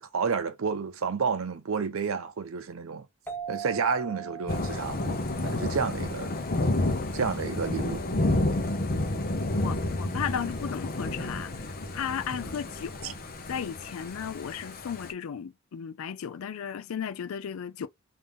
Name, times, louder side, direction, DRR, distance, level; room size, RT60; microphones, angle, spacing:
voice 1, 0.0-3.1 3.5-5.2 5.4-6.3 7.1-8.0 13.0-13.1, right 5 dB, 75° right, 0.6 m, -30 dB
sound 1, 3.3-6.6, right 7 dB, 10° left, 0.5 m, -41 dB
Thunder / Rain, 4.5-15.1, left 2 dB, 45° left, 0.8 m, -30 dB
voice 2, 9.6-13.2 13.5-17.9, left 8 dB, 90° left, 0.4 m, -35 dB
3.5 x 2.7 x 3.5 m
head